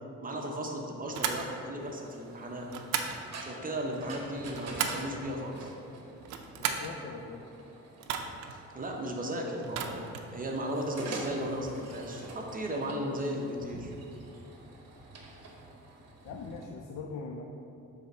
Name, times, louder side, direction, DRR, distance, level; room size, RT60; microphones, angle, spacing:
voice 1, 0.2-2.7 3.4-5.7 8.5-10.1 10.3-13.9, equal, 30° right, 0 dB, 0.9 m, -35 dB
sound 1, 1.1-1.5 2.7-3.2 4.3-5.1 6.2-6.9 8.0-8.5 9.6-10.3, right 7 dB, 85° right, 0.5 m, -34 dB
sound 2, 1.8-16.7, right 2 dB, 55° right, 0.9 m, -47 dB
voice 2, 6.6-7.5 16.2-17.4, left 4 dB, 65° left, 2 dB, 0.5 m, -41 dB
6.7 x 3.5 x 4.2 m, 2.7 s
cardioid pair, 90°, 30 cm